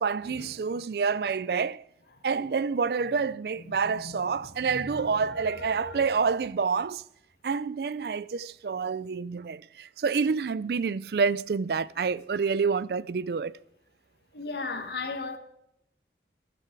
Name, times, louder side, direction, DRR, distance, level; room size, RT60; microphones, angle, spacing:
voice 1, 0.0-1.8 2.2-7.0 7.4-13.6, right 5 dB, 65° right, 0.4 m, -28 dB
voice 2, 3.7-4.2 4.6-4.8 5.6-6.0 14.3-15.4, left 3 dB, 70° left, 1.6 m, -36 dB
12.5 x 12.0 x 4.6 m
head